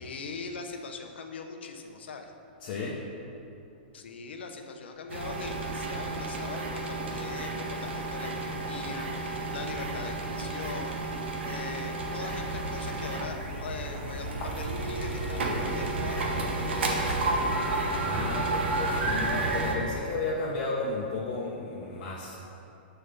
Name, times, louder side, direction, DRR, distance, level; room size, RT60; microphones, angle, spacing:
voice 1, 0.0-2.3 3.9-17.4, left 4 dB, 85° left, 5 dB, 0.7 m, -41 dB
voice 2, 2.6-3.0 17.9-22.4, left 3 dB, 45° left, -5 dB, 0.9 m, -33 dB
sound 1, 5.1-19.7, right 2 dB, 85° right, 1.1 m, -31 dB
6.7 x 4.5 x 5.1 m, 2.8 s
hypercardioid pair, 155°, 6 cm